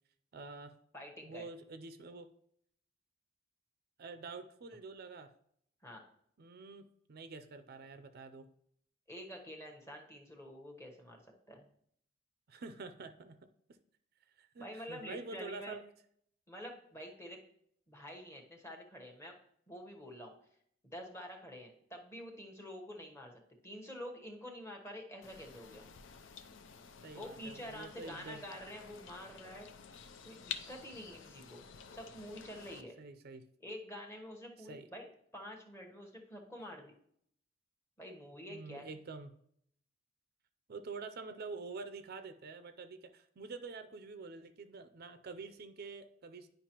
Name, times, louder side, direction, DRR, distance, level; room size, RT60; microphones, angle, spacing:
voice 1, 0.3-0.7 1.2-2.3 4.0-5.3 6.4-8.5 12.5-13.4 14.4-15.9 27.0-28.4 33.0-33.5 34.6-34.9 38.5-39.3 40.7-46.5, right 4 dB, 55° right, 10 dB, 0.5 m, -47 dB
voice 2, 0.9-1.5 5.8-6.0 9.1-11.2 11.5-11.7 14.6-15.8 16.5-17.4 17.9-19.4 19.7-20.3 20.8-25.9 27.1-29.7 30.2-31.6 31.9-33.0 33.6-35.1 35.3-36.9 38.0-38.9, equal, 15° left, 1 dB, 1.0 m, -48 dB
sound 1, 25.2-32.8, left 7 dB, 70° left, 0.5 m, -50 dB
10.0 x 5.2 x 2.9 m, 0.68 s
head